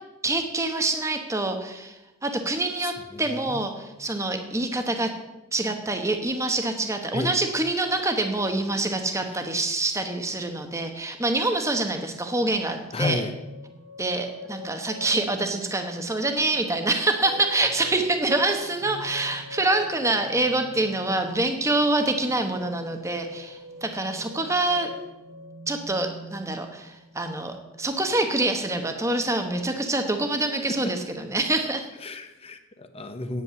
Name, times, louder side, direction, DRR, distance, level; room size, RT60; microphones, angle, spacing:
voice 1, 0.2-5.1 5.5-13.2 14.0-24.9 25.7-31.9, right 2 dB, 15° right, 6 dB, 1.0 m, -26 dB
voice 2, 2.8-3.7 7.1-7.3 12.9-13.3 32.0-33.4, left 2 dB, 25° left, 7 dB, 0.8 m, -32 dB
sound 1, 12.2-28.5 28.9-29.6, equal, 55° right, 1.2 m, -45 dB
9.3 x 8.5 x 6.9 m, 0.99 s
head